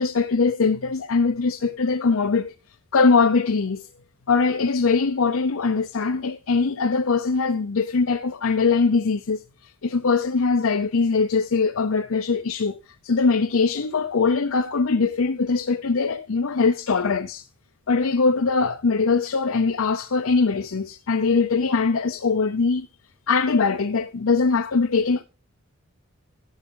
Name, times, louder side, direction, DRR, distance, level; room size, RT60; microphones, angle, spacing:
voice 1, 0.0-2.5 2.9-3.9 4.3-17.4 17.9-22.9 23.3-25.2, left 4 dB, 80° left, 0.6 m, -22 dB
12.5 x 8.2 x 3.8 m
head